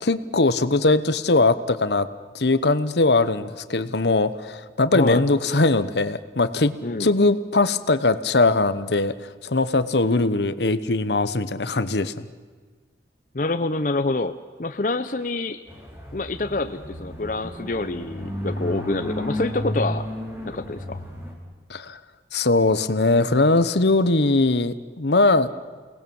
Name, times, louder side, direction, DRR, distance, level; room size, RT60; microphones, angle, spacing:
voice 1, 0.0-2.1 2.3-6.7 7.0-12.3 21.7-22.0 22.3-25.5, left 2 dB, 75° left, 13 dB, 1.0 m, -20 dB
voice 2, 6.8-7.1 13.3-14.3 14.6-15.6 16.1-20.1 20.4-21.0, left 2 dB, 45° left, 9 dB, 0.7 m, -26 dB
sound 1, 15.7-21.3, left 1 dB, 15° right, 4.6 m, -32 dB
29.0 x 19.0 x 7.2 m, 1.5 s
head